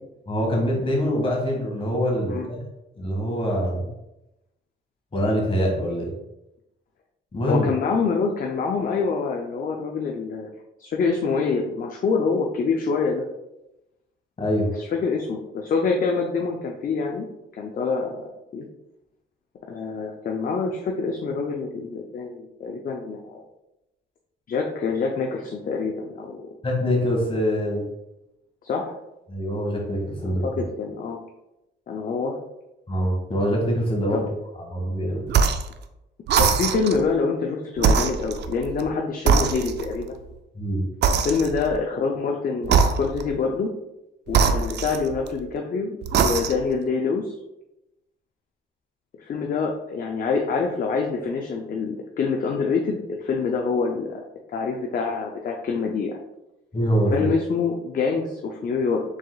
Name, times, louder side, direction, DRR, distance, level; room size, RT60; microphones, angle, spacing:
voice 1, 0.3-2.4 3.0-3.9 5.1-6.1 7.3-7.7 14.4-14.7 26.6-27.8 29.3-30.6 32.9-34.3 34.6-35.2 40.5-40.8 56.7-57.3, equal, 30° left, -1 dB, 1.5 m, -24 dB
voice 2, 7.5-10.5 10.8-13.2 14.8-17.3 17.5-18.7 19.7-23.4 24.5-26.5 28.6-29.0 30.4-31.2 31.9-32.4 34.1-34.2 36.4-40.2 41.2-43.7 44.3-47.3 49.2-54.2 54.5-56.2 57.1-59.0, left 4 dB, 45° left, 1 dB, 0.5 m, -26 dB
sound 1, 35.3-35.7 36.3-37.0 37.8-38.9 39.3-40.1 41.0-41.8 42.6-43.4 44.3-45.4 46.0-46.8, right 6 dB, 60° right, 0.4 m, -22 dB
4.8 x 3.6 x 2.3 m, 0.92 s
cardioid pair, 90°, 20 cm